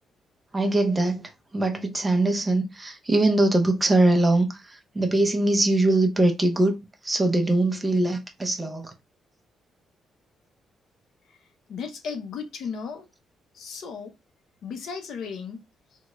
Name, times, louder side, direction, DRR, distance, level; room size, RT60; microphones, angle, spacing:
voice 1, 0.5-6.8 7.0-8.9, right 2 dB, 15° right, 0.5 m, -22 dB
voice 2, 11.7-13.1 13.5-14.1 14.6-15.6, left 6 dB, 65° left, 0.6 m, -35 dB
3.6 x 2.1 x 2.9 m
cardioid pair, 165°, 0 cm